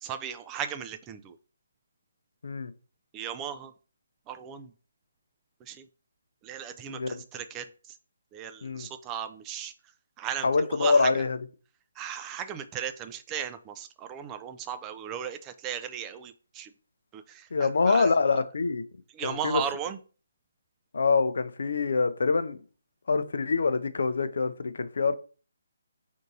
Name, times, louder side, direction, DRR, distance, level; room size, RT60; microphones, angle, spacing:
voice 1, 0.0-1.4 3.1-3.7 4.3-4.7 5.7-5.8 6.4-7.7 8.3-9.7 10.2-11.2 12.0-16.7 17.1-18.1 19.1-20.0, right 9 dB, 20° right, 0.3 m, -36 dB
voice 2, 10.4-11.4 17.5-18.8 19.2-19.6 20.9-22.6 23.1-25.1, left 4 dB, 70° left, 0.5 m, -25 dB
3.5 x 2.7 x 4.1 m
figure-of-eight pair, 150°, 0 cm